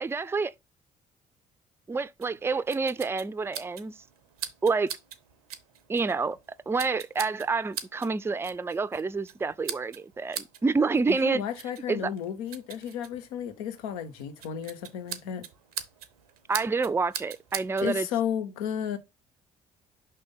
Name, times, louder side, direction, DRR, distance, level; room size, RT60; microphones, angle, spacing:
voice 1, 0.0-0.5 1.9-4.0 4.6-4.9 5.9-6.4 6.7-11.4 11.9-12.1 16.5-18.1, right 4 dB, 15° right, 0.4 m, -28 dB
sound 1, 2.2-17.9, right 9 dB, 90° right, 0.6 m, -43 dB
voice 2, 11.1-15.5 17.8-19.0, left 9 dB, 80° left, 0.9 m, -33 dB
5.5 x 3.4 x 5.3 m
hypercardioid pair, 50°, 18 cm